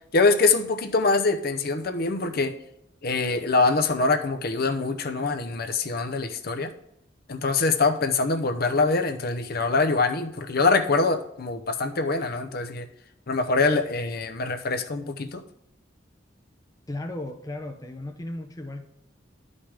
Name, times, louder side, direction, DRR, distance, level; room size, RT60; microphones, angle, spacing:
voice 1, 0.1-2.6 3.0-6.7 7.3-12.9 13.3-15.4, left 3 dB, 55° left, 7 dB, 0.7 m, -24 dB
voice 2, 16.9-18.8, left 1 dB, 20° left, 5 dB, 0.6 m, -35 dB
11.5 x 5.4 x 3.5 m, 0.76 s
head